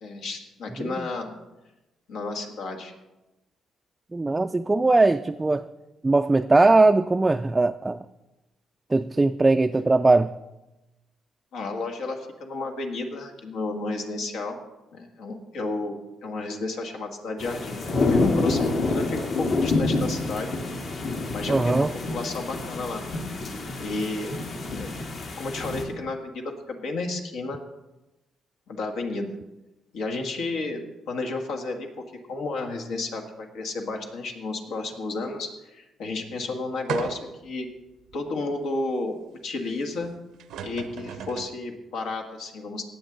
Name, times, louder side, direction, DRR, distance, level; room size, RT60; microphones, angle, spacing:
voice 1, 0.0-1.3 2.1-2.9 11.5-14.6 14.9-20.5 20.9-21.0 21.3-23.0 23.8-24.3 24.7-24.9 25.4-27.6 28.7-29.3 29.9-37.7 38.1-39.2 39.4-40.1 40.6-42.8, left 3 dB, 80° left, 3 dB, 1.7 m, -32 dB
voice 2, 4.1-5.7 6.0-8.1 8.9-10.3 21.5-21.9, right 2 dB, 20° right, 7 dB, 0.3 m, -20 dB
sound 1, 17.4-25.8, left 3 dB, 65° left, 2.1 m, -27 dB
sound 2, 36.9-37.5 38.1-38.2 40.0-40.1 40.4-41.6, right 8 dB, 85° right, 0.7 m, -35 dB
18.5 x 7.3 x 3.9 m, 1.0 s
cardioid pair, 90°, 0 cm